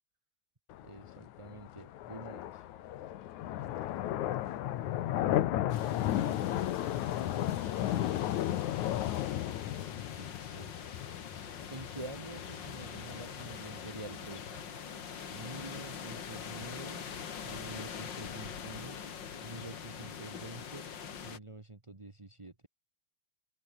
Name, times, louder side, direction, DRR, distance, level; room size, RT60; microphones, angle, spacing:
sound 1, 0.7-14.6, left 13 dB, 80° left, 2.5 m, -34 dB
voice 1, 0.8-2.6 6.1-6.6 10.1-10.7 11.7-14.7 15.3-17.1 17.4-19.0 19.4-20.8 21.2-22.7, right 2 dB, 45° right, 0.4 m, -47 dB
voice 2, 2.7-5.6 6.6-9.7, right 3 dB, 65° right, 8.8 m, -63 dB
sound 2, 5.7-21.4, left 7 dB, 45° left, 2.1 m, -44 dB
open air
omnidirectional pair, 3.4 m